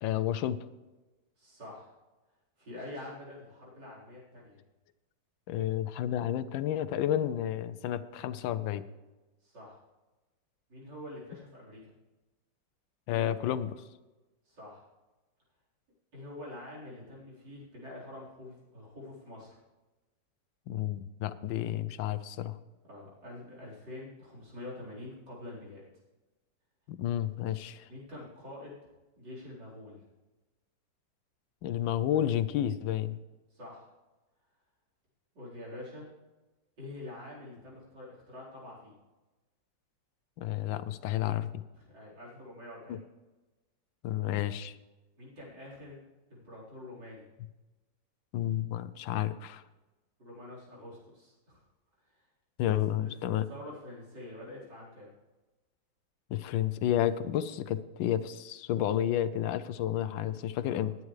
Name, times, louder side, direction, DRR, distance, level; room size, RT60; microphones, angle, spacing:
voice 1, 0.0-0.6 5.5-8.9 13.1-13.7 20.7-22.6 26.9-27.9 31.6-33.2 40.4-41.5 42.9-43.0 44.0-44.8 48.3-49.6 52.6-53.5 56.3-60.9, left 11 dB, 90° left, 14 dB, 1.4 m, -31 dB
voice 2, 1.4-1.9 2.6-4.6 9.4-9.8 10.7-11.9 14.4-14.8 16.1-19.6 22.9-25.8 27.9-28.8 29.2-30.0 33.5-33.9 35.3-36.1 36.8-39.0 41.7-43.0 45.2-46.0 46.3-47.3 50.2-51.6 52.0-52.3 53.0-53.1 53.5-55.1 60.7-60.8, left 1 dB, 65° right, -7 dB, 4.9 m, -46 dB
19.5 x 9.6 x 3.2 m, 1.1 s
omnidirectional pair, 2.0 m